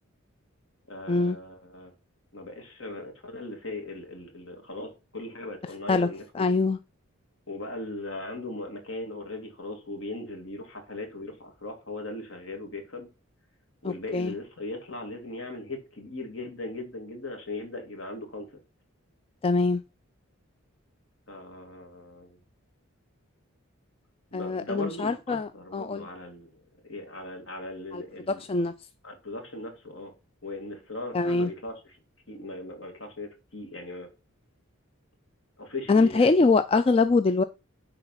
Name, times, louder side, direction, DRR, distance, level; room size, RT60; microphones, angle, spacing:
voice 1, 0.9-1.9 2.3-6.6 7.5-13.1 13.8-18.6 21.3-22.4 24.3-28.4 29.0-30.1 30.4-32.0 32.3-34.1 35.6-36.4, left 2 dB, 65° left, 2.5 m, -39 dB
voice 2, 6.4-6.8 13.8-14.3 19.4-19.8 24.3-26.0 27.9-28.0 28.3-28.7 31.1-31.5 35.9-37.4, left 3 dB, 25° left, 0.3 m, -23 dB
10.0 x 3.9 x 5.6 m
head